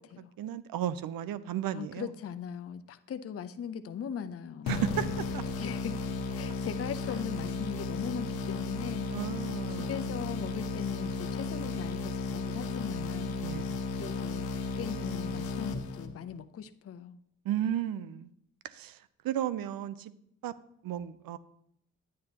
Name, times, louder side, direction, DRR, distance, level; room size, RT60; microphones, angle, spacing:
voice 1, 0.4-2.1 4.7-5.4 9.1-9.9 13.4-13.7 17.4-18.3 18.6-19.0 19.2-20.1 20.4-20.5 20.8-21.4, right 11 dB, 65° right, 0.6 m, -34 dB
voice 2, 1.7-4.8 5.6-6.0 6.3-9.1 9.7-13.4 14.0-17.2, left 8 dB, 40° left, 0.6 m, -40 dB
sound 1, 4.7-16.4, left 3 dB, 75° left, 0.9 m, -34 dB
9.8 x 9.4 x 2.9 m
hypercardioid pair, 40°, 37 cm